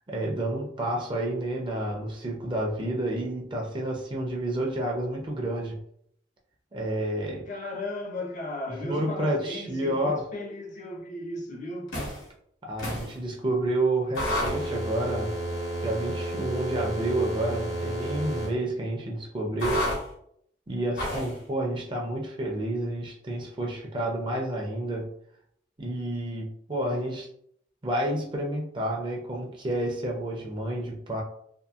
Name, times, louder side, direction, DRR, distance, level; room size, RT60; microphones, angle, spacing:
voice 1, 0.1-5.8 6.7-7.5 8.8-10.2 12.6-15.3 15.8-19.9 20.7-25.1 25.8-27.3 27.8-31.2, right 1 dB, 25° right, 0.4 m, -30 dB
voice 2, 7.5-12.0, left 2 dB, 40° left, 0.5 m, -36 dB
sound 1, 11.9-12.2 12.8-13.1 14.1-18.5 19.6-20.0 21.0-21.3, equal, 85° left, 1.1 m, -31 dB
2.7 x 2.6 x 2.3 m
head